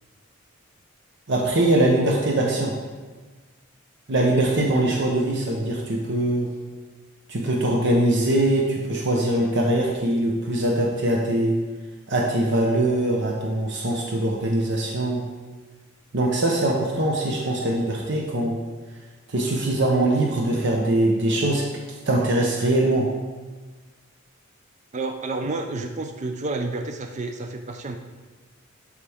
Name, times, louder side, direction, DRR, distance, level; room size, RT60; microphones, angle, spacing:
voice 1, 1.3-2.8 4.1-6.5 7.3-11.6 12.1-15.2 16.1-18.6 19.3-21.6 22.0-23.1, right 1 dB, 60° right, -1 dB, 0.9 m, -22 dB
voice 2, 24.9-28.0, right 3 dB, 35° right, 5 dB, 0.5 m, -30 dB
11.5 x 4.9 x 3.5 m, 1.3 s
head